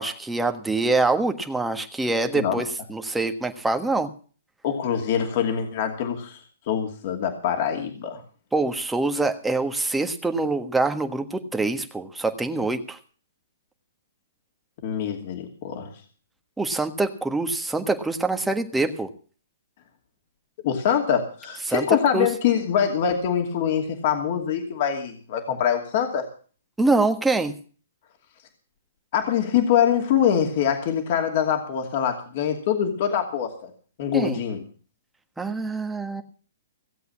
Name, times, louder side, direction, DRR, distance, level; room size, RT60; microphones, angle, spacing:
voice 1, 0.0-4.1 8.5-13.0 16.6-19.1 21.7-22.3 26.8-27.5 34.1-34.4 35.4-36.2, right 3 dB, 5° right, 5 dB, 1.5 m, -25 dB
voice 2, 4.6-6.4 6.7-8.2 14.8-15.9 20.6-26.3 29.1-33.7 34.0-34.6, left 8 dB, 50° left, 3 dB, 2.6 m, -24 dB
17.0 x 8.1 x 7.3 m, 0.42 s
hypercardioid pair, 130°, 0 cm